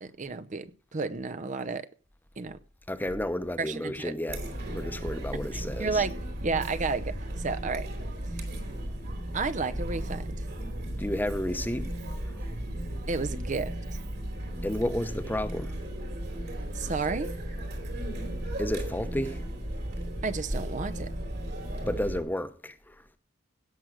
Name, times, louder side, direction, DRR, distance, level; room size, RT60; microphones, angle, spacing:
voice 1, 0.0-1.9 2.4-2.6 3.6-4.1 5.4-6.1 6.4-7.9 9.3-10.4 13.1-13.7 16.7-17.3 20.2-21.1, right 4 dB, 40° right, 0.6 m, -32 dB
voice 2, 2.9-4.4 4.7-6.0 10.9-11.9 14.6-15.7 18.6-19.4 21.8-23.0, left 1 dB, 10° left, 0.8 m, -31 dB
Chatter, 4.3-22.2, right 1 dB, 60° right, 2.9 m, -35 dB
17.0 x 6.3 x 6.1 m
head